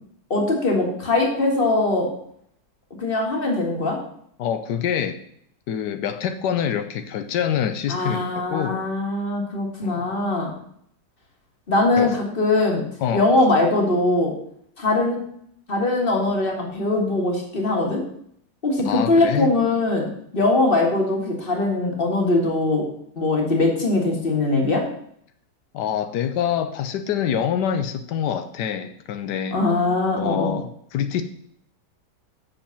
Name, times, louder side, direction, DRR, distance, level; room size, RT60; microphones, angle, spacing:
voice 1, 0.3-2.1 3.0-4.0 7.9-10.5 11.7-12.9 13.1-14.4 14.8-15.2 15.7-18.0 18.6-22.9 23.2-24.9 29.5-30.5, left 2 dB, 35° left, 0 dB, 2.1 m, -21 dB
voice 2, 4.4-5.2 5.7-8.2 8.5-8.9 9.8-10.0 12.0-12.1 13.0-13.3 18.8-19.5 25.7-29.6 30.2-31.2, left 9 dB, 90° left, 8 dB, 1.3 m, -25 dB
6.8 x 5.2 x 7.1 m, 0.66 s
omnidirectional pair, 1.7 m